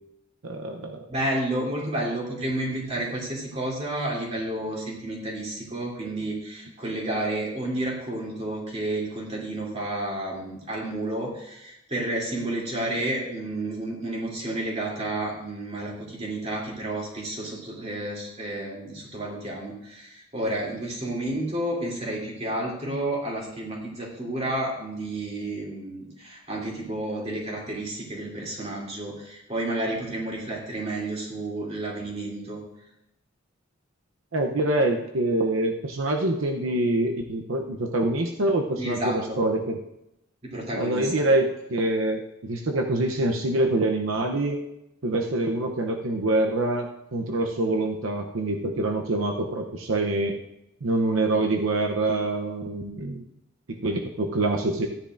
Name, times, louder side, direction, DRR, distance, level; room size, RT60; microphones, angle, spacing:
voice 1, 0.4-1.1 34.3-39.8 40.7-44.6 45.0-50.4 50.8-53.2 53.7-54.9, right 2 dB, 80° right, 3 dB, 0.8 m, -25 dB
voice 2, 1.1-32.6 38.8-39.4 40.4-41.1, right 1 dB, 30° right, -4 dB, 3.1 m, -31 dB
15.0 x 10.0 x 2.6 m, 0.85 s
head